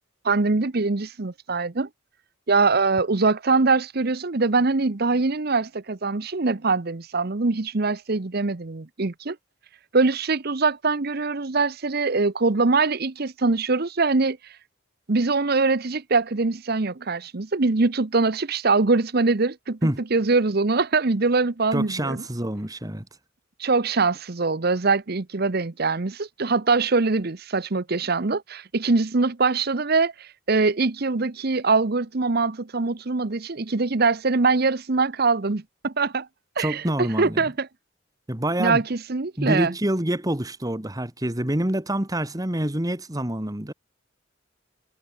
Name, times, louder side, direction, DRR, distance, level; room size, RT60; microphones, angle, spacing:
voice 1, 0.2-1.9 2.5-9.4 9.9-14.4 15.1-19.8 20.1-22.2 23.6-36.3 36.6-37.7 38.6-39.7, right 3 dB, 50° right, 0.9 m, -23 dB
voice 2, 21.7-23.0 36.6-37.4 38.3-38.8 39.4-43.7, right 1 dB, 20° right, 1.7 m, -26 dB
head